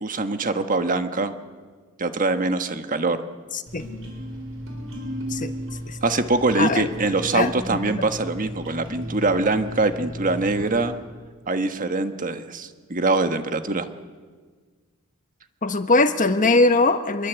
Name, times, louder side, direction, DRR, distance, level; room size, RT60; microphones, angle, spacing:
voice 1, 0.0-1.3 2.0-3.2 6.0-11.0 11.5-13.9, right 3 dB, 40° right, 8 dB, 1.5 m, -23 dB
voice 2, 3.5-3.8 5.3-5.5 5.9-6.0 6.5-6.8 7.3-8.1 15.6-17.3, left 2 dB, 40° left, 8 dB, 1.4 m, -21 dB
sound 1, 3.7-10.9, equal, 70° right, 6.3 m, -35 dB
26.0 x 22.5 x 8.2 m, 1.5 s
head